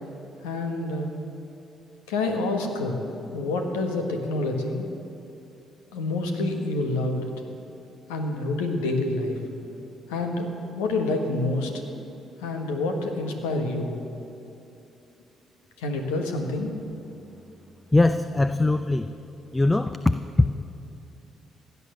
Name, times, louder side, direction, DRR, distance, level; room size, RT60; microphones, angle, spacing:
voice 1, 0.4-1.1 2.1-3.0 3.3-4.8 5.9-7.3 8.1-9.4 10.1-11.7 12.4-13.9 15.8-16.7, left 2 dB, 80° left, 4 dB, 1.4 m, -27 dB
voice 2, 17.9-19.1 19.5-20.0 20.4-20.6, left 2 dB, 15° left, 11 dB, 0.5 m, -21 dB
17.0 x 9.7 x 6.7 m, 2.8 s
hypercardioid pair, 45°, 0 cm